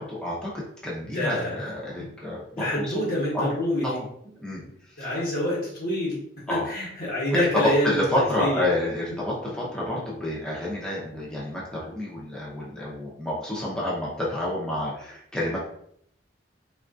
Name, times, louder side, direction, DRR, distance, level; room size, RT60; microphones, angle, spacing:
voice 1, 0.0-2.9 3.3-3.5 3.8-4.0 4.4-4.6 5.0-5.2 6.5-6.6 7.4-15.6, left 1 dB, 5° left, -7 dB, 0.7 m, -29 dB
voice 2, 1.1-1.7 2.5-4.0 5.0-6.2 6.5-8.6, left 1 dB, 55° left, -5 dB, 1.1 m, -27 dB
3.5 x 2.4 x 2.4 m, 0.67 s
head